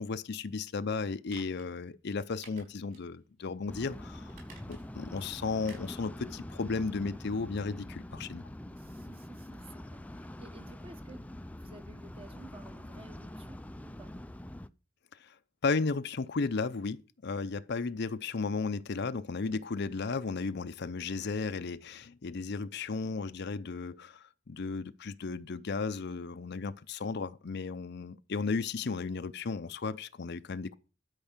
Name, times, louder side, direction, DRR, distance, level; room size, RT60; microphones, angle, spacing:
voice 1, 0.0-4.3 4.7-8.4 15.2-15.3 15.6-30.7, left 4 dB, 60° left, 0.6 m, -34 dB
sound 1, 1.3-1.7 2.4-3.1 3.5-3.6 4.3-5.0 5.6-6.0 6.4-6.5, right 4 dB, 45° right, 5.8 m, -54 dB
sound 2, 3.7-14.7, left 1 dB, 5° left, 0.4 m, -45 dB
voice 2, 8.8-14.2, right 2 dB, 30° right, 1.1 m, -54 dB
12.5 x 5.3 x 7.2 m
head